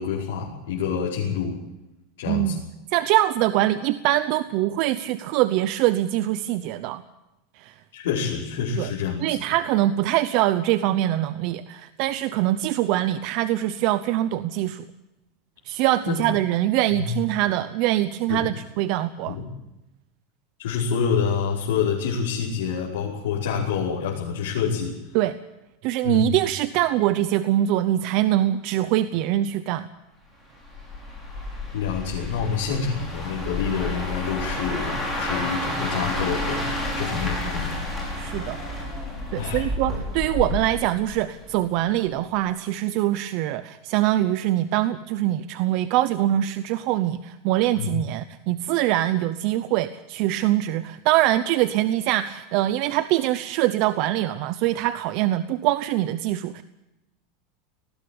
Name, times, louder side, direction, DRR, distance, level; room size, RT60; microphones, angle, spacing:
voice 1, 0.0-1.5 2.2-2.6 7.9-9.4 16.1-16.2 16.9-17.1 18.3-18.5 19.3-19.5 20.6-24.9 26.0-26.4 31.7-37.8 39.3-39.7 47.8-47.9, left 6 dB, 90° left, -4 dB, 5.3 m, -27 dB
voice 2, 2.3-2.6 2.9-7.0 7.6-7.7 8.8-8.9 9.2-14.9 15.7-19.4 25.1-25.4 25.8-29.9 38.1-38.6 39.3-56.6, right 14 dB, 40° right, 13 dB, 0.8 m, -23 dB
sound 1, 30.6-41.7 42.1-42.4, left 1 dB, 5° left, 5.7 m, -30 dB
19.5 x 17.0 x 8.6 m, 0.97 s
supercardioid pair, 175°, 0 cm